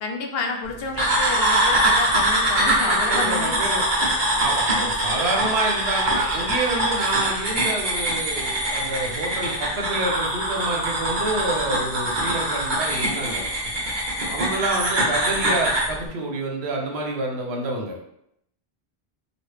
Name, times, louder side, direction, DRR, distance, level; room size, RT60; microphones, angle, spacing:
voice 1, 0.0-3.8, left 4 dB, 70° left, 3 dB, 0.8 m, -30 dB
sound 1, 1.0-15.9, right 1 dB, 50° right, 0.9 m, -23 dB
voice 2, 2.8-3.8 4.3-13.4 14.3-18.0, right 2 dB, 85° right, 0 dB, 0.9 m, -28 dB
3.0 x 2.4 x 3.2 m, 0.78 s
omnidirectional pair, 1.1 m